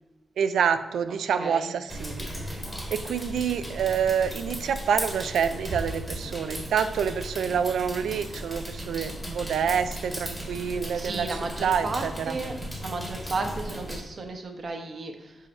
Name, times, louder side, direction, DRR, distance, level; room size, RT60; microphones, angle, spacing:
voice 1, 0.4-2.3 2.9-11.3 11.6-12.3, right 7 dB, 90° right, 11 dB, 0.4 m, -27 dB
voice 2, 1.4-1.7 2.3-2.5 10.9-12.5 12.8-15.4, right 3 dB, 45° right, 4 dB, 0.9 m, -33 dB
sound 1, 1.9-14.0, equal, ahead, 1.3 m, -36 dB
5.5 x 4.9 x 5.3 m, 1.0 s
wide cardioid pair, 130°, 0 cm